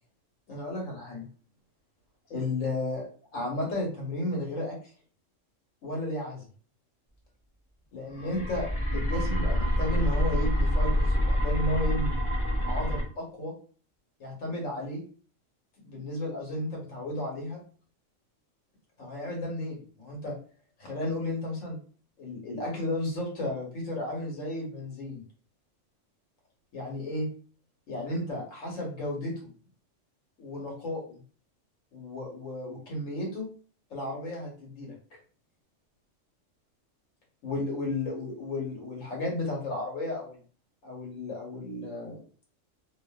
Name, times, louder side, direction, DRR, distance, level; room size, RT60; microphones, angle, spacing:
voice 1, 0.5-1.3 2.3-3.1 3.3-4.8 5.8-6.5 7.9-8.7 8.9-12.1 12.6-13.5 14.2-15.0 15.8-17.6 19.0-20.4 20.8-21.8 22.2-25.2 26.7-27.3 27.9-29.5 30.4-31.2 31.9-33.5 33.9-34.9 37.4-40.4 40.8-42.2, left 1 dB, 80° left, -2 dB, 1.4 m, -33 dB
sound 1, 8.1-13.0, equal, 50° left, 0.3 m, -26 dB
2.5 x 2.4 x 2.2 m, 0.42 s
omnidirectional pair, 1.3 m